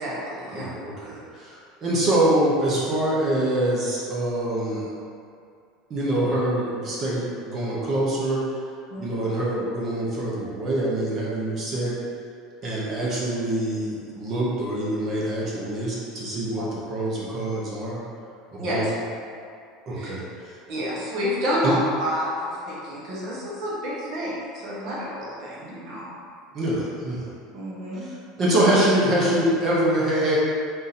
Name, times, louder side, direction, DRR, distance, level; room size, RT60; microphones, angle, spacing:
voice 1, 0.0-0.7 8.9-9.0 16.6-16.7 18.6-18.9 20.0-20.1 20.7-26.1 27.5-28.0, equal, 45° right, -6 dB, 1.1 m, -29 dB
voice 2, 0.5-4.9 5.9-8.4 9.0-11.9 12.6-18.0 18.5-18.9 19.9-20.6 21.6-21.7 26.5-27.3 28.0-28.1 28.4-30.4, right 1 dB, 25° right, -6 dB, 0.7 m, -25 dB
3.8 x 2.7 x 4.1 m, 2.4 s
cardioid pair, 170°, 0 cm